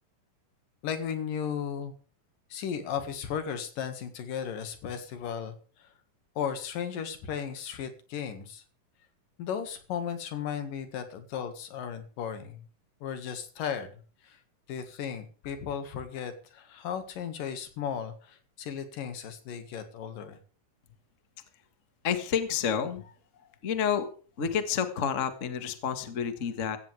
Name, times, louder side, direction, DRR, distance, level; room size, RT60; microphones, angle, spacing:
voice 1, 0.8-1.9 2.5-5.9 6.4-8.6 9.4-12.6 13.0-13.9 14.2-14.4 14.7-20.4, left 8 dB, 85° left, 8 dB, 3.5 m, -35 dB
voice 2, 22.0-23.1 23.6-24.1 24.4-26.8, left 7 dB, 35° left, 9 dB, 1.3 m, -29 dB
16.0 x 15.5 x 3.5 m, 0.40 s
omnidirectional pair, 3.8 m